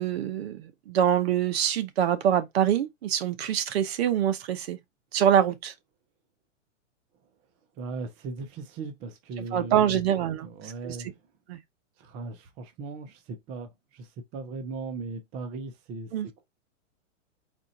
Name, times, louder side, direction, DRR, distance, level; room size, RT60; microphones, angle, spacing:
voice 1, 0.0-4.8 5.1-5.7 9.4-11.0 11.5-11.6 16.1-16.3, right 9 dB, 55° right, 0.8 m, -25 dB
voice 2, 7.8-10.1 10.4-11.2 12.0-16.4, right 3 dB, 20° right, 0.5 m, -38 dB
4.4 x 2.4 x 4.0 m
hypercardioid pair, 150°, 38 cm